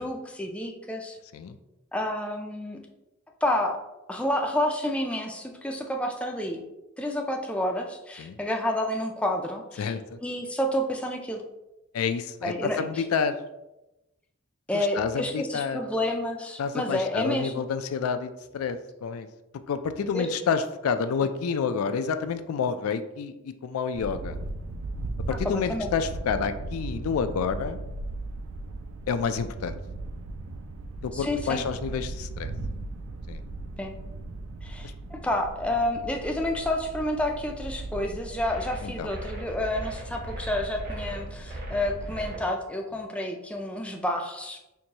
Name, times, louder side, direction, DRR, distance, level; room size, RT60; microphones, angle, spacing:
voice 1, 0.0-1.2 1.9-2.8 3.4-3.8 4.1-6.6 7.0-9.9 10.2-11.4 12.4-13.0 14.7-17.7 20.1-20.3 25.4-25.9 31.1-31.6 33.8-33.9 34.6-44.6, left 1 dB, 5° left, 2 dB, 0.3 m, -29 dB
voice 2, 9.8-10.2 11.9-13.4 14.7-15.8 16.6-19.3 19.7-24.4 25.3-27.8 29.1-29.8 31.0-32.5 33.3-33.4 38.8-39.1, left 6 dB, 90° left, 10 dB, 0.3 m, -29 dB
sound 1, 23.9-42.4, right 2 dB, 80° right, 0.4 m, -38 dB
sound 2, 38.4-42.4, right 1 dB, 45° right, 1.0 m, -38 dB
4.5 x 2.6 x 2.8 m, 0.96 s
head